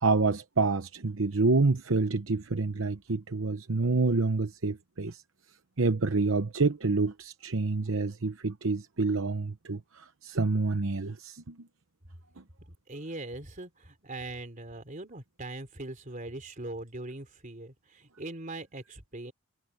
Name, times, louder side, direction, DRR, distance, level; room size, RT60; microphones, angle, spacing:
voice 1, 0.0-5.2 5.8-11.6, right 3 dB, 65° right, 0.9 m, -28 dB
voice 2, 12.9-19.3, right 2 dB, 40° right, 3.6 m, -41 dB
head